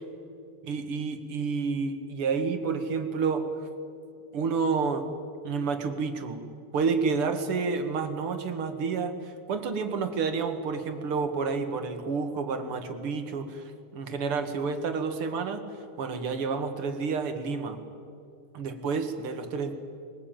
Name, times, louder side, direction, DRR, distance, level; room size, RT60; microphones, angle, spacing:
voice 1, 0.6-3.5 4.3-5.1 5.4-6.4 6.7-15.7 16.0-17.8 18.5-19.7, right 5 dB, 80° right, 7 dB, 2.6 m, -29 dB
22.0 x 21.0 x 9.0 m, 2.4 s
omnidirectional pair, 2.4 m